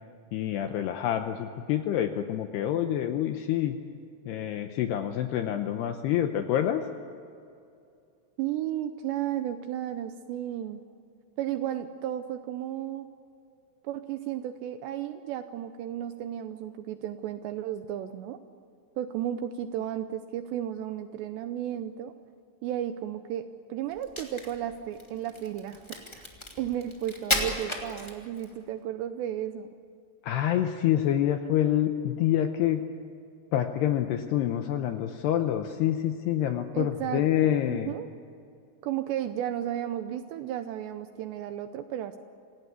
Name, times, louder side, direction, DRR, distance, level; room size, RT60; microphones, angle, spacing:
voice 1, 0.3-3.8 4.3-6.8 30.2-32.8 33.5-37.9, left 11 dB, 80° left, 7 dB, 2.4 m, -27 dB
voice 2, 8.4-10.8 11.4-13.1 13.8-18.4 19.0-22.1 22.6-26.3 26.6-29.7 36.7-38.1 38.8-42.2, right 11 dB, 80° right, 9 dB, 2.6 m, -34 dB
Crack, 23.9-28.6, left 1 dB, 15° left, 1.0 m, -34 dB
27.0 x 17.5 x 8.2 m, 2.5 s
omnidirectional pair, 5.8 m